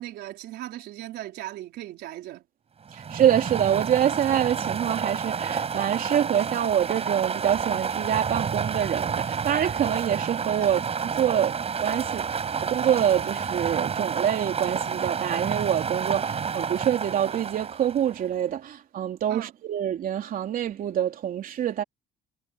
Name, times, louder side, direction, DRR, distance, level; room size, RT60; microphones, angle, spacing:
voice 1, 0.0-2.4 10.6-10.8 19.3-19.5, right 14 dB, 75° right, 4.4 m, -38 dB
sound 1, 2.9-18.3, right 6 dB, 35° right, 7.3 m, -30 dB
voice 2, 2.9-11.5 11.8-12.3 12.6-21.8, right 10 dB, 55° right, 3.4 m, -26 dB
cardioid pair, 110°, 17 cm